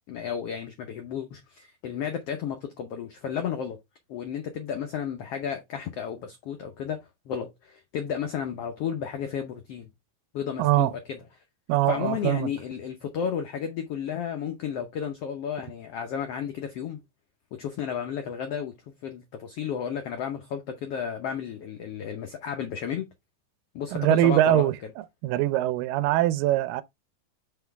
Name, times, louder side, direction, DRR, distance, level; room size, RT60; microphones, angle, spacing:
voice 1, 0.1-3.8 4.1-9.9 10.3-11.2 11.9-17.0 17.6-23.1 23.7-24.7, left 8 dB, 75° left, 1.4 m, -33 dB
voice 2, 10.6-10.9 11.7-12.5 23.9-24.7 25.2-26.8, right 15 dB, 90° right, 2.2 m, -22 dB
5.8 x 5.1 x 3.4 m
omnidirectional pair, 3.8 m